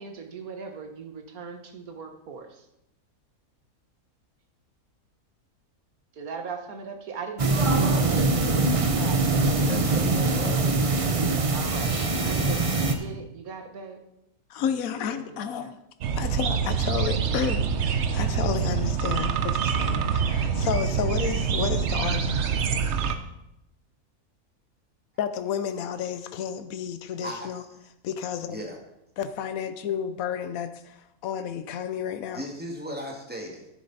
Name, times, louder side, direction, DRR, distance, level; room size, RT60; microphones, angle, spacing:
voice 1, 0.0-2.6 6.1-14.0 14.6-15.7, right 5 dB, 70° right, 5 dB, 1.7 m, -39 dB
sound 1, 7.4-12.9, right 3 dB, 30° right, 0.7 m, -23 dB
voice 2, 9.7-10.6 27.2-27.5 28.5-28.8 32.3-33.7, equal, 5° right, 0 dB, 2.0 m, -36 dB
voice 3, 14.5-15.7 16.2-22.6 25.2-27.6 28.0-28.6 29.2-32.4, left 8 dB, 70° left, 10 dB, 1.2 m, -31 dB
sound 2, 16.0-23.2, right 6 dB, 55° right, 1.0 m, -25 dB
12.0 x 10.0 x 4.1 m, 0.85 s
omnidirectional pair, 1.6 m